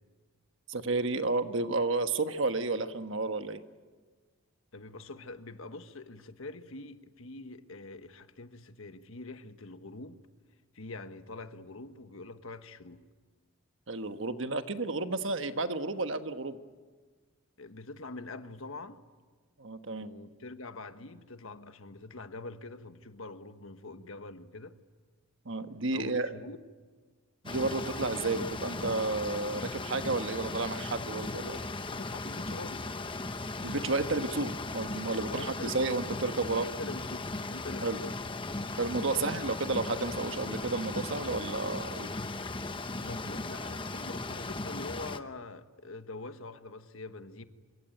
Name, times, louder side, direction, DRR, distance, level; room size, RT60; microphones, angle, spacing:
voice 1, 0.7-3.6 13.9-16.6 19.6-20.1 25.4-26.3 27.4-31.6 33.6-36.7 37.8-38.0 38.8-42.1, right 3 dB, 65° right, 1.3 m, -32 dB
voice 2, 4.7-10.2 10.7-13.0 17.6-19.0 20.0-24.7 25.9-26.6 31.5-31.6 31.9-32.9 35.3-36.0 36.8-38.1 39.1-39.4 43.0-47.4, left 2 dB, 75° left, 1.4 m, -44 dB
sound 1, 27.5-45.2, left 2 dB, 25° left, 0.9 m, -37 dB
25.5 x 23.5 x 9.1 m
head